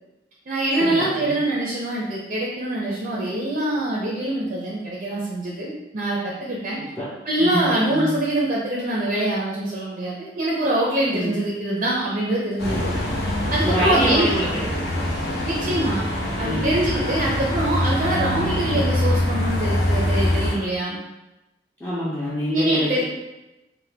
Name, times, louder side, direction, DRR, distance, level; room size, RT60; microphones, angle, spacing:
voice 1, 0.5-6.8 7.2-12.9 13.5-14.4 15.4-16.0 16.4-21.0 22.5-23.0, right 1 dB, 40° right, -5 dB, 0.4 m, -24 dB
voice 2, 7.4-8.2 11.1-11.4 13.6-14.5 15.7-15.9 16.4-16.8 21.8-23.0, equal, 10° left, -9 dB, 0.4 m, -25 dB
sound 1, 12.6-20.5, left 1 dB, 55° left, 0.6 m, -24 dB
2.7 x 2.1 x 3.3 m, 0.99 s
head